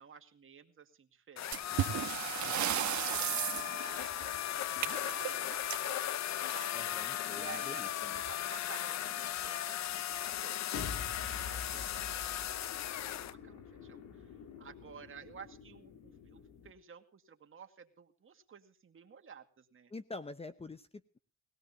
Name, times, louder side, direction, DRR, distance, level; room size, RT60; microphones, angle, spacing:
voice 1, 0.0-1.6 2.4-6.7 7.3-19.9, right 7 dB, 45° right, 5 dB, 2.3 m, -54 dB
sound 1, 1.4-13.3, left 12 dB, 65° left, 0.7 m, -37 dB
sound 2, 1.5-6.9 8.1-8.3 8.6-8.7 9.4-9.5 10.1-10.4, right 11 dB, 70° right, 1.4 m, -36 dB
voice 2, 6.7-8.2 14.5-14.6 19.9-21.2, left 3 dB, 20° left, 12 dB, 0.9 m, -47 dB
sound 3, 8.7-8.8 10.7-16.7, left 5 dB, 85° left, 3.1 m, -47 dB
21.0 x 17.0 x 2.8 m, 0.37 s
cardioid pair, 90°, 30 cm